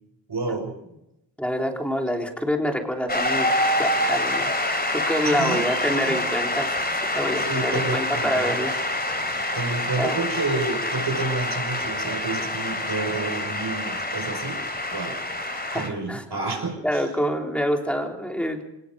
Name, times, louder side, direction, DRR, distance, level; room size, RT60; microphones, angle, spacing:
voice 1, 0.3-0.7 5.2-6.2 7.4-8.5 9.5-14.6 14.9-15.2 15.7-17.0, right 3 dB, 65° right, 5 dB, 5.8 m, -29 dB
voice 2, 1.4-3.5 3.8-4.5 4.9-8.8 10.0-10.2 15.6-16.2 16.8-18.6, equal, 5° left, 2 dB, 3.7 m, -26 dB
Shout / Cheering / Applause, 3.1-15.9, left 1 dB, 20° left, 3.4 m, -26 dB
26.5 x 18.5 x 5.2 m, 0.86 s
wide cardioid pair, 100°, 42 cm